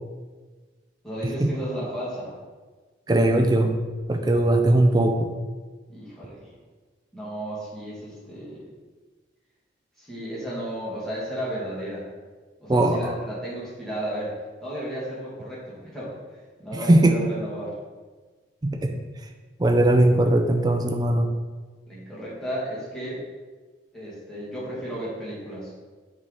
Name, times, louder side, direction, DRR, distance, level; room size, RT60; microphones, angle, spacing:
voice 1, 1.0-2.3 5.9-6.5 7.1-8.6 10.0-12.1 12.6-14.4 14.6-17.8 21.9-23.2 23.9-25.7, right 1 dB, 5° left, -9 dB, 2.0 m, -34 dB
voice 2, 3.1-3.8 4.1-5.3 12.7-13.1 16.7-17.1 18.6-19.0 19.6-21.3, right 1 dB, 20° right, 6 dB, 0.4 m, -19 dB
8.0 x 3.5 x 4.0 m, 1.4 s
head